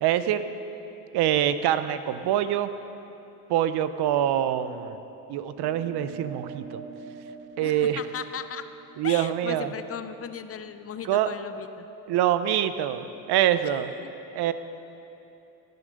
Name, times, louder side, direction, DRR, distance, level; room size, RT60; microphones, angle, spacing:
voice 1, 0.0-0.4 1.1-2.7 3.5-5.0 5.3-6.8 7.6-8.0 9.0-9.7 11.0-11.3 12.1-13.9 14.3-14.5, right 11 dB, 60° right, 12 dB, 0.8 m, -25 dB
sound 1, 5.5-10.3, right 5 dB, 20° right, 1.6 m, -44 dB
voice 2, 7.6-8.7 9.0-11.9 14.0-14.1, left 8 dB, 30° left, 11 dB, 0.6 m, -37 dB
17.5 x 7.9 x 5.2 m, 2.9 s
supercardioid pair, 90°, 44 cm